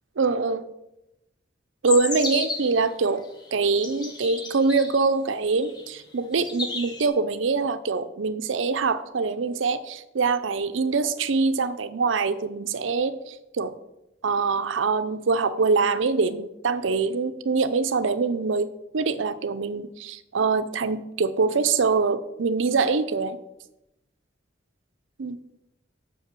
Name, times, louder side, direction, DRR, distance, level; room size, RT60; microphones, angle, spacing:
voice 1, 0.2-0.6 1.8-3.2 3.5-13.7 14.2-18.7 18.9-23.4 25.2-25.4, right 4 dB, 90° right, 12 dB, 0.6 m, -24 dB
sound 1, 1.9-2.8 3.5-5.0 5.6-6.0 6.3-7.1, left 3 dB, 20° left, 0.9 m, -32 dB
5.8 x 5.4 x 6.7 m, 0.90 s
head